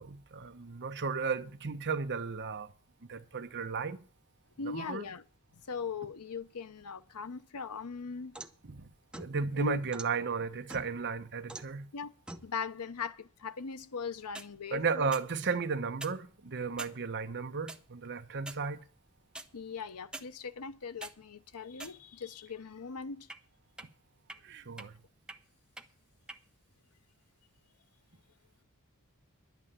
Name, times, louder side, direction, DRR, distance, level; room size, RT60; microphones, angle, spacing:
voice 1, 0.0-2.7 3.1-4.0 4.6-5.1 8.6-8.9 9.1-11.9 14.7-18.8 24.4-25.0, right 5 dB, 55° right, 0.9 m, -34 dB
voice 2, 4.6-5.2 5.7-8.4 9.6-9.8 11.9-12.1 12.4-15.1 19.5-23.3, left 5 dB, 90° left, 0.8 m, -40 dB
sound 1, 7.7-8.6 9.1-10.1 10.7-11.1 11.5-11.8 12.3-12.5 14.2-14.5 15.1-15.3 15.9-16.2 16.8-17.0 17.7-17.8 18.4-18.7 19.3-19.5 20.1-20.3 20.8-21.2 21.7-22.3 23.3-23.4 23.8-23.9 24.3-24.4 24.8-24.9 25.3-25.4 25.8-25.9 26.3-26.4, right 2 dB, 5° right, 0.7 m, -44 dB
11.0 x 8.4 x 7.3 m
head